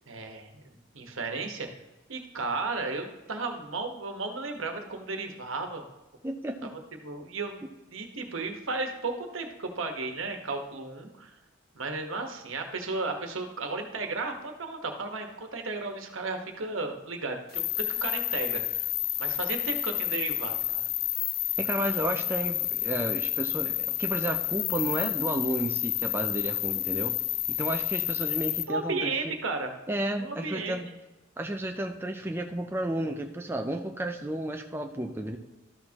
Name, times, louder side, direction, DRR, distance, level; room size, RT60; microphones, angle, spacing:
voice 1, 0.1-0.5 0.9-1.7 2.1-5.8 6.6-6.7 7.0-7.6 7.9-11.3 11.7-18.8 19.2-20.9 28.7-29.7 30.2-30.8, right 3 dB, 80° right, 4 dB, 1.2 m, -34 dB
voice 2, 6.2-6.7 21.6-27.2 27.5-29.3 29.9-30.9 31.4-35.4, right 1 dB, 10° right, 3 dB, 0.4 m, -32 dB
sound 1, 17.5-28.6, left 13 dB, 45° left, 0.4 m, -30 dB
13.0 x 6.4 x 2.9 m, 1.1 s
head